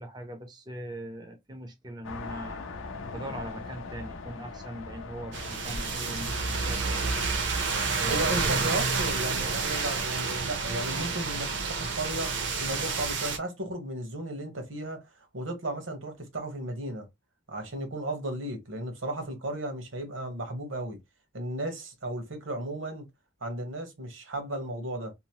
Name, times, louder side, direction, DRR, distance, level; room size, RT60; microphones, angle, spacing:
voice 1, 0.0-2.6 3.1-7.1 8.0-8.6, right 1 dB, 20° right, 0.5 m, -40 dB
sound 1, 2.0-10.0, left 3 dB, 85° left, 0.5 m, -42 dB
sound 2, 5.3-13.4, right 4 dB, 70° right, 0.7 m, -29 dB
voice 2, 8.1-17.1 17.5-21.0 21.3-23.0 23.4-25.1, right 1 dB, 85° right, 1.1 m, -35 dB
2.8 x 2.0 x 2.8 m
head